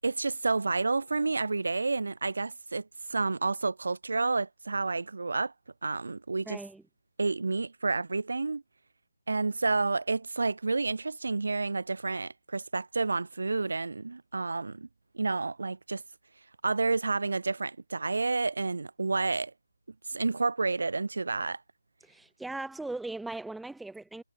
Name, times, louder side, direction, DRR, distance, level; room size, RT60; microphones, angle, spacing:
voice 1, 0.0-5.5 5.8-6.6 7.2-8.6 9.3-14.9 15.1-16.0 16.6-19.5 20.1-21.6, right 3 dB, 75° right, 3.5 m, -30 dB
voice 2, 6.5-6.8 22.0-24.2, right 2 dB, ahead, 1.0 m, -39 dB
hypercardioid pair, 180°, 0 cm